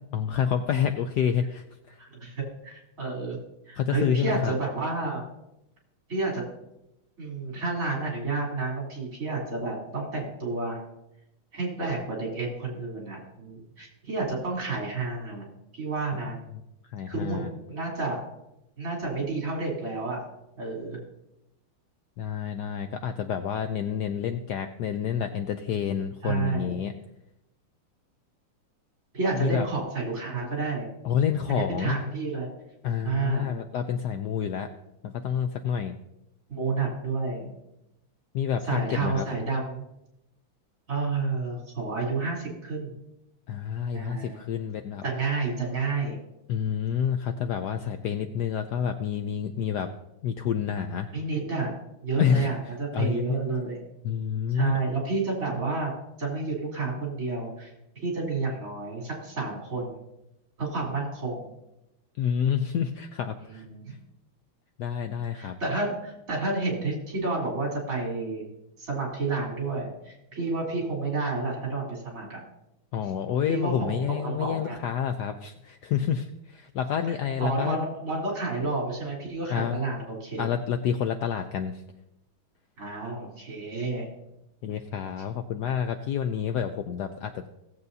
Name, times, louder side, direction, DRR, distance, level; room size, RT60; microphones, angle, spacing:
voice 1, 0.1-2.0 3.8-4.5 16.9-17.5 22.2-26.9 29.3-29.7 31.0-32.0 32.8-34.7 35.0-35.9 38.3-39.3 43.5-45.0 46.5-49.9 50.2-51.1 52.2-52.5 52.9-53.4 54.0-54.8 62.2-63.6 64.8-65.6 72.9-77.8 79.5-79.8 80.4-81.8 84.6-87.5, left 8 dB, 85° left, 7 dB, 0.9 m, -28 dB
voice 2, 2.0-3.4 3.7-5.2 6.1-6.4 7.2-10.8 11.5-15.5 15.7-16.4 17.1-18.2 18.8-20.2 20.6-21.0 26.2-26.8 29.1-30.9 31.5-32.5 33.0-33.5 36.5-37.6 38.7-39.8 40.9-42.9 43.9-44.4 45.0-46.2 51.1-51.8 52.0-53.8 54.5-57.7 58.0-60.0 60.6-61.5 63.5-63.9 65.3-68.4 68.8-72.4 73.5-74.8 77.4-80.5 82.8-84.1, right 3 dB, 40° right, -3 dB, 3.7 m, -30 dB
17.5 x 7.9 x 2.7 m, 0.87 s
omnidirectional pair, 2.4 m